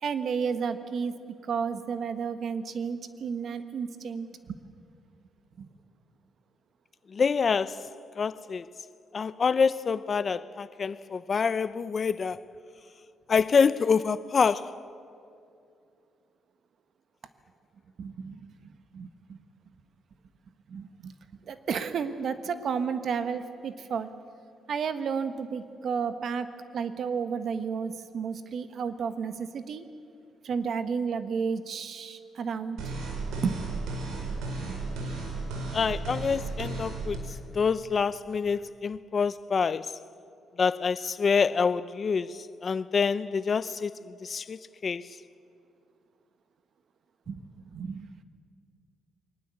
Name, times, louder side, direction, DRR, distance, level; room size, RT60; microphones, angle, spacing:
voice 1, 0.0-1.1 1.4-4.6 5.6-5.7 18.0-19.4 20.7-21.1 21.5-24.1 24.7-26.5 26.7-29.8 30.4-32.8 33.4-33.6 34.6-34.8 47.3-47.4 47.7-48.2, right 6 dB, 60° right, 1.4 m, -32 dB
voice 2, 7.1-7.8 8.2-8.7 9.1-12.4 13.3-14.7 35.7-37.2 37.5-40.0 40.6-45.1, left 5 dB, 40° left, 0.6 m, -26 dB
sound 1, 32.8-37.2, right 3 dB, 85° right, 4.8 m, -34 dB
23.0 x 19.0 x 8.4 m
cardioid pair, 90°, 0 cm